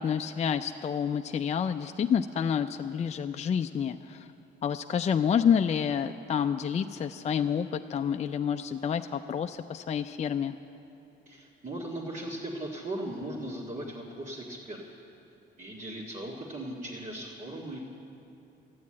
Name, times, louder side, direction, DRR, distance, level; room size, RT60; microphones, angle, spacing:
voice 1, 0.0-4.3 4.6-10.6, left 7 dB, 35° left, 7 dB, 0.4 m, -28 dB
voice 2, 11.3-14.8 15.6-17.8, right 1 dB, 40° right, -5 dB, 1.8 m, -38 dB
12.5 x 9.4 x 8.6 m, 2.8 s
cardioid pair, 90°, 20 cm